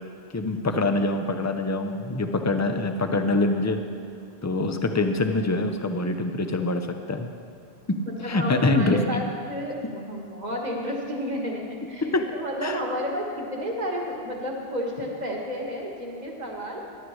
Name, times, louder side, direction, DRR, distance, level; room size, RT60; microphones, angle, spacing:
voice 1, 0.3-3.8 4.4-7.3 7.9-9.2 12.0-12.3 12.6-12.8, left 2 dB, 20° left, 6 dB, 0.5 m, -25 dB
voice 2, 8.1-16.8, equal, 40° right, -1 dB, 1.6 m, -31 dB
16.5 x 11.0 x 3.1 m, 2.3 s
omnidirectional pair, 1.1 m